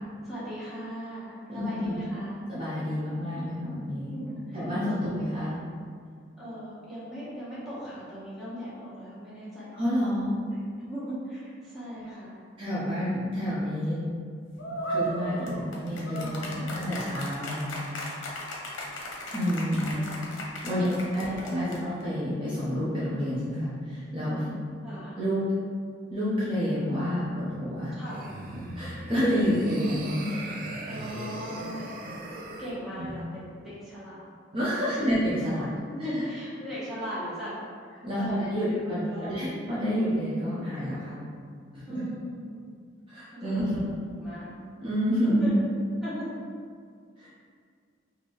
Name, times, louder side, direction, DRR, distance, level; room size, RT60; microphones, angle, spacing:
voice 1, 0.0-2.4 4.1-4.6 5.0-5.2 6.4-9.7 10.5-12.4 16.3-17.0 19.9-21.9 24.8-25.1 28.0-28.3 29.6-30.1 30.9-32.1 32.6-34.2 34.7-35.1 35.9-37.6 37.9-38.8 39.0-39.5 41.9-42.6 43.4-43.8 44.1-44.5 45.3-45.6 46.0-46.3, equal, ahead, -11 dB, 1.2 m, -39 dB
voice 2, 1.5-1.9 2.5-4.2 4.5-5.5 9.7-10.3 12.6-14.0 14.9-17.8 18.1-18.3 19.3-19.9 20.6-20.8 21.1-24.5 25.2-25.4 26.1-27.9 28.8-30.4 33.0-33.1 34.5-35.7 38.0-41.1 41.9-42.0 43.1-43.8 44.8-45.5 47.2-47.3, equal, 25° right, -11 dB, 0.8 m, -29 dB
sound 1, 14.6-22.0, right 1 dB, 80° left, 0.7 m, -36 dB
sound 2, 28.0-32.8, right 2 dB, 45° right, 0.4 m, -39 dB
4.3 x 3.0 x 3.1 m, 2.1 s
head